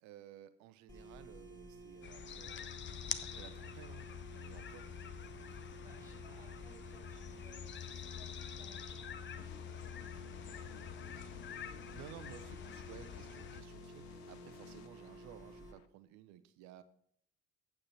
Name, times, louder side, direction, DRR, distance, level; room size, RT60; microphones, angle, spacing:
voice 1, 0.0-2.7 3.2-4.9 11.9-16.8, right 12 dB, 60° right, 12 dB, 0.7 m, -55 dB
sound 1, 0.9-15.7, right 2 dB, 10° left, 2.6 m, -54 dB
sound 2, 2.0-13.6, left 9 dB, 35° left, 0.7 m, -46 dB
voice 2, 5.6-13.1, equal, 10° right, -1 dB, 2.8 m, -65 dB
sound 3, 9.4-15.9, left 13 dB, 70° left, 0.6 m, -55 dB
8.9 x 7.2 x 4.3 m, 0.68 s
figure-of-eight pair, 50°, 32 cm